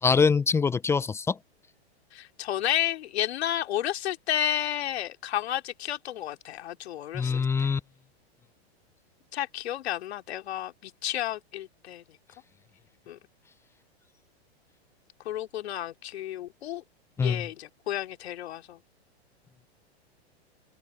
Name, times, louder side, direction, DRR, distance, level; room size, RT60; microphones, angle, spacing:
voice 1, 0.0-1.4 7.1-7.8 17.2-17.5, left 5 dB, 10° left, 0.4 m, -24 dB
voice 2, 2.1-7.7 9.3-12.0 13.1-13.2 15.2-16.8 17.2-18.8, left 11 dB, 70° left, 2.7 m, -32 dB
hypercardioid pair, 120°, 33 cm